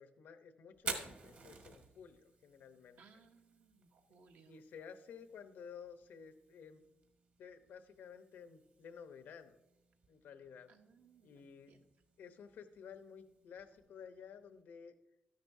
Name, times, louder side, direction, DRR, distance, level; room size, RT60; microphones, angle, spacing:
voice 1, 0.0-3.0 4.5-6.8 7.4-9.6 10.1-10.7 11.2-11.8 12.2-14.9, left 7 dB, 80° left, 9 dB, 0.8 m, -53 dB
Fire, 0.7-14.6, right 4 dB, 55° right, 1.7 m, -52 dB
voice 2, 3.0-4.6 10.7-11.9, right 5 dB, 75° right, 4 dB, 1.1 m, -65 dB
13.0 x 10.5 x 2.7 m, 0.91 s
wide cardioid pair, 140°, 3 cm